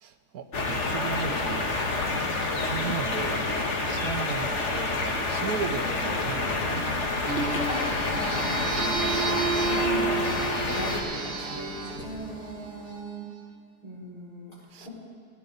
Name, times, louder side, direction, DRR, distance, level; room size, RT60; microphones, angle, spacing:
voice 1, 0.0-2.0 2.6-3.5 3.9-6.8 14.7-14.9, right 6 dB, 75° right, 8 dB, 1.3 m, -36 dB
sound 1, 0.5-11.0, left 3 dB, 50° left, 1.5 m, -28 dB
sound 2, 7.3-13.3, right 5 dB, 40° right, 1.0 m, -31 dB
voice 2, 7.6-10.4 10.7-13.3 13.8-14.5 14.8-14.9, equal, 80° left, -6 dB, 5.4 m, -37 dB
sound 3, 8.0-13.0, right 1 dB, 5° right, 1.2 m, -45 dB
20.0 x 16.0 x 4.0 m, 2.2 s
omnidirectional pair, 1.7 m